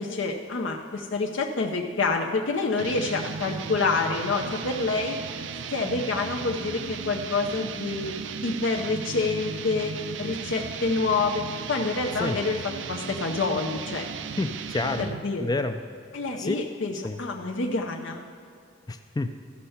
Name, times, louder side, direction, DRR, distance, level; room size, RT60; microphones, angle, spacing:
voice 1, 0.0-5.2 5.7-8.1 8.4-9.9 10.2-11.4 11.7-12.6 12.9-14.1 15.0-15.4 16.1-18.2, left 3 dB, 75° left, 2 dB, 0.6 m, -27 dB
sound 1, 2.8-15.3, right 6 dB, 70° right, 0.4 m, -36 dB
voice 2, 14.4-15.1 15.4-15.8 16.4-16.6 17.0-17.2 18.9-19.3, left 2 dB, 20° left, 8 dB, 0.3 m, -28 dB
13.5 x 5.5 x 5.6 m, 2.4 s
head